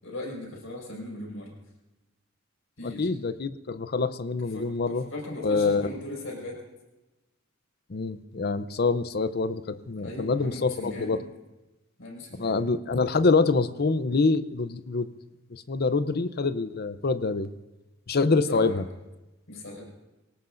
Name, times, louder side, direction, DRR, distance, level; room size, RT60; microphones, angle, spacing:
voice 1, 0.0-1.5 2.8-3.1 4.5-6.6 10.0-11.2 12.0-12.6 18.5-18.8 19.5-19.9, left 1 dB, 85° left, -1 dB, 5.7 m, -38 dB
voice 2, 2.8-5.1 5.4-5.9 7.9-11.2 12.4-15.1 15.5-17.5 18.1-18.8, left 4 dB, 50° left, 12 dB, 0.7 m, -26 dB
24.0 x 18.5 x 2.6 m, 1.0 s
head